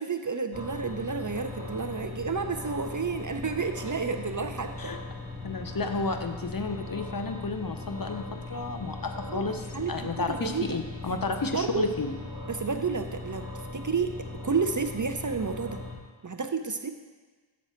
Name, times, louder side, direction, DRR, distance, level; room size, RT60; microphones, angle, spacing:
voice 1, 0.0-4.9 9.2-10.8 11.4-11.9 12.5-13.5 13.7-14.2 14.4-15.8 16.2-16.9, right 5 dB, 40° right, 7 dB, 0.6 m, -31 dB
sound 1, 0.5-15.9, left 2 dB, 10° right, 2.1 m, -39 dB
voice 2, 5.4-12.1, left 3 dB, 45° left, 6 dB, 0.7 m, -32 dB
8.1 x 6.3 x 4.3 m, 1.4 s
wide cardioid pair, 45°, 48 cm